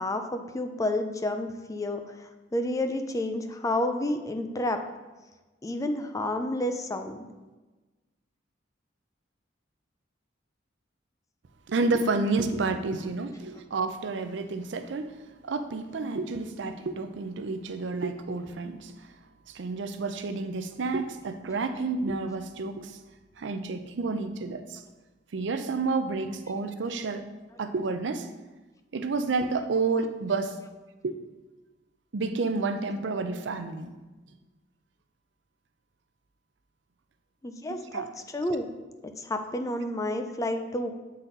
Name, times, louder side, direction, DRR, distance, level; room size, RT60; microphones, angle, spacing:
voice 1, 0.0-4.8 5.6-7.3 37.4-38.1 38.3-38.7 39.2-40.9, left 1 dB, 20° left, 7 dB, 0.4 m, -30 dB
voice 2, 11.7-15.1 15.4-18.9 19.5-23.0 23.4-24.8 25.3-27.3 27.6-28.3 28.9-30.6 31.0-31.2 32.1-33.9 37.7-38.1, right 3 dB, 70° right, 9 dB, 0.5 m, -30 dB
7.5 x 4.1 x 3.9 m, 1.2 s
head